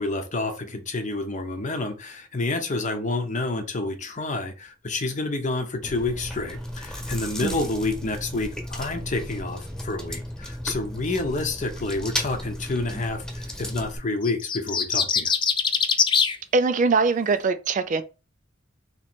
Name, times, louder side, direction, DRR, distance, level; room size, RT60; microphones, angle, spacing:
voice 1, 0.0-15.3, left 2 dB, 40° left, 0.8 m, -29 dB
Chewing mastication, 5.8-14.0, equal, 5° left, 1.2 m, -34 dB
sound 1, 14.2-16.4, left 6 dB, 25° left, 0.4 m, -22 dB
voice 2, 16.5-18.0, right 4 dB, 40° right, 0.4 m, -22 dB
3.0 x 3.0 x 4.3 m
head